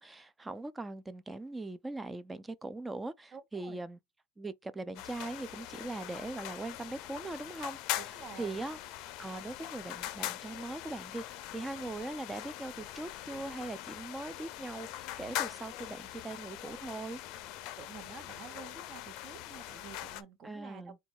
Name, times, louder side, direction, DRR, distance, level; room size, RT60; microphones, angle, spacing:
voice 1, 0.0-4.0 4.4-8.8 9.2-17.2 20.4-21.0, right 2 dB, 10° right, 0.4 m, -41 dB
voice 2, 3.3-3.8 7.9-8.6 17.8-20.9, right 6 dB, 30° right, 0.9 m, -49 dB
sound 1, 5.0-20.2, left 14 dB, 55° left, 0.5 m, -42 dB
3.9 x 2.3 x 4.4 m
supercardioid pair, 130°, 0 cm